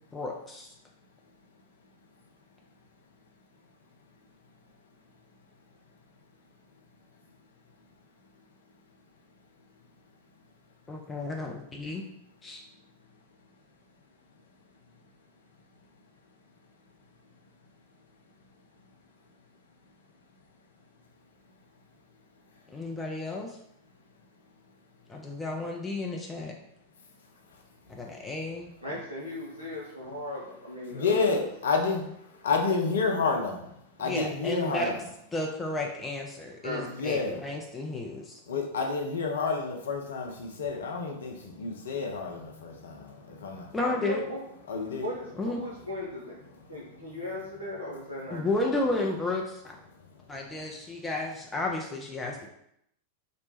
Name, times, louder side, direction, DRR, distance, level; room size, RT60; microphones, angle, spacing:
voice 1, 0.1-0.7 10.9-12.0 12.4-12.6 22.7-23.6 25.1-26.5 27.9-28.7 34.0-34.9 35.3-38.4 43.7-44.2 45.4-45.6 48.3-49.8 50.3-52.5, left 2 dB, 15° left, 0 dB, 0.4 m, -32 dB
voice 2, 28.8-31.5 33.1-33.3 34.7-35.0 36.6-37.1 43.8-44.4 45.0-46.4 46.7-48.7, left 1 dB, 85° right, -6 dB, 0.7 m, -37 dB
voice 3, 30.9-32.0 32.4-33.6 34.0-35.0 37.0-37.4 38.5-43.1 43.4-43.6 44.7-45.1, left 4 dB, 65° left, 3 dB, 0.6 m, -29 dB
3.0 x 2.1 x 4.1 m, 0.76 s
figure-of-eight pair, 90°, 0 cm